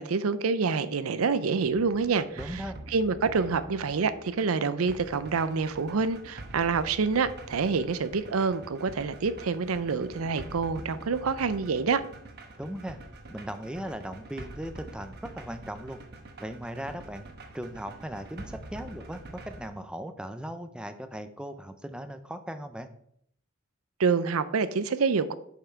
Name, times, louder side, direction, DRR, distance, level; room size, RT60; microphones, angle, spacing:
voice 1, 0.0-2.3 2.5-2.6 2.9-12.0 24.0-25.3, right 5 dB, 90° right, 0.5 m, -27 dB
sound 1, 1.6-19.7, right 2 dB, 50° right, 1.1 m, -46 dB
voice 2, 2.4-2.8 12.6-13.0 13.3-16.0 16.4-17.3 17.5-22.9, right 1 dB, 5° right, 0.5 m, -38 dB
7.3 x 5.7 x 4.5 m
head